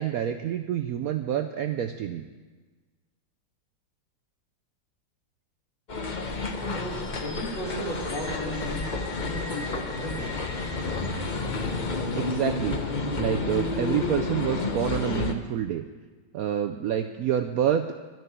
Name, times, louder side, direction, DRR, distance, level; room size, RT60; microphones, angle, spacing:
voice 1, 0.0-2.2 12.2-15.8 16.3-18.0, right 10 dB, 75° right, 6 dB, 0.8 m, -28 dB
sound 1, 5.9-15.3, left 3 dB, 45° left, 0.6 m, -30 dB
voice 2, 6.6-10.3, equal, 75° left, -1 dB, 3.0 m, -35 dB
12.0 x 6.8 x 9.0 m, 1.4 s
omnidirectional pair, 2.1 m